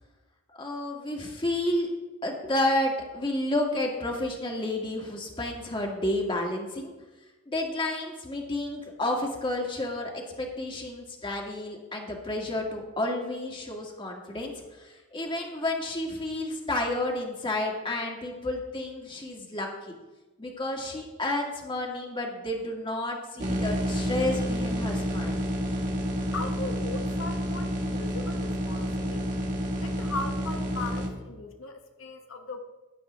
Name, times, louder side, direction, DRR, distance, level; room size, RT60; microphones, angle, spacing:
voice 1, 0.5-1.9 2.2-6.9 7.5-14.5 14.8-19.9 20.4-25.4, left 1 dB, 25° left, 0 dB, 1.8 m, -31 dB
sound 1, 23.4-31.1, equal, 35° right, 1.9 m, -29 dB
voice 2, 26.3-29.2 29.8-32.6, left 3 dB, 80° left, 4 dB, 1.1 m, -38 dB
15.5 x 10.0 x 3.1 m, 1.2 s
head